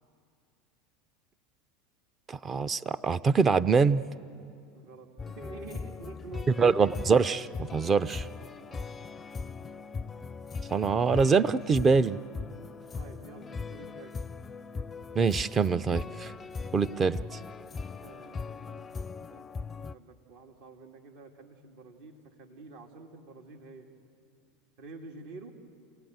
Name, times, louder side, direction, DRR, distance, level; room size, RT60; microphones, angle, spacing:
voice 1, 2.3-4.0 6.6-8.2 10.7-12.2 15.1-16.3 16.7-17.2, right 5 dB, 30° right, 13 dB, 0.6 m, -24 dB
voice 2, 4.7-6.6 8.6-8.9 12.9-14.1 18.0-19.0 19.3-19.7 19.9-23.9 24.8-25.5, right 3 dB, 65° right, 2 dB, 2.1 m, -48 dB
sound 1, 5.2-19.9, left 4 dB, 25° left, 0.5 m, -40 dB
28.0 x 18.5 x 8.0 m, 2.5 s
hypercardioid pair, 90°, 0 cm